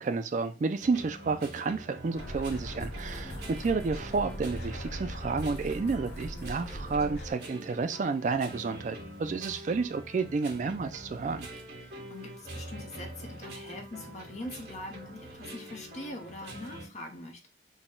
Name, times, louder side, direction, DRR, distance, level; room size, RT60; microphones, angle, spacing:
voice 1, 0.0-11.5, right 4 dB, 45° right, 0.3 m, -31 dB
sound 1, 0.8-16.9, right 1 dB, 60° right, 1.8 m, -45 dB
sound 2, 2.1-7.3, equal, 65° left, 1.5 m, -40 dB
voice 2, 3.0-3.5 11.8-17.5, left 1 dB, 40° left, 0.8 m, -43 dB
4.0 x 2.2 x 3.6 m
head